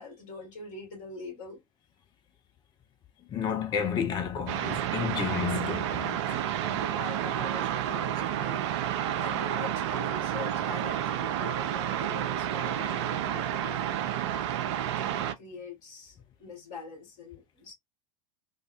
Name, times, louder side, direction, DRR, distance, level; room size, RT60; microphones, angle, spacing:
voice 1, 0.0-1.6 6.6-8.6 9.0-13.8 14.7-17.7, left 4 dB, 45° left, 1.8 m, -44 dB
voice 2, 3.3-6.4, left 7 dB, 25° left, 0.5 m, -31 dB
sound 1, 4.5-15.3, right 10 dB, 50° right, 0.4 m, -30 dB
3.3 x 2.1 x 2.4 m
figure-of-eight pair, 80°, 18 cm